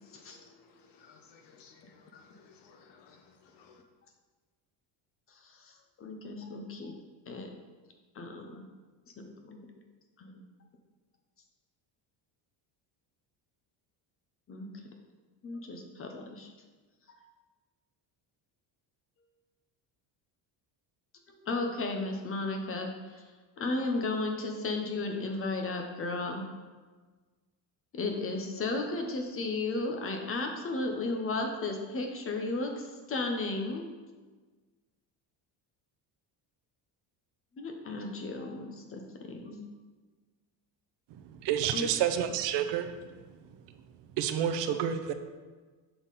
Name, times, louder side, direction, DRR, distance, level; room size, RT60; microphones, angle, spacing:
voice 1, 1.0-1.8 2.1-3.2 3.6-3.7, left 6 dB, 60° left, 5 dB, 0.8 m, -57 dB
voice 2, 5.4-5.7 6.0-6.9 7.3-7.5 8.1-8.6 9.5-9.6 10.2-10.5 14.5-14.7 15.4-16.5 17.1-17.2 21.3-23.2 23.6-26.4 27.9-33.8 37.6-39.6 41.7-41.9, left 2 dB, 30° left, 3 dB, 0.8 m, -34 dB
voice 3, 41.4-42.9 44.2-45.1, right 9 dB, 65° right, 9 dB, 0.6 m, -29 dB
6.8 x 3.7 x 4.0 m, 1.4 s
cardioid pair, 130°, 46 cm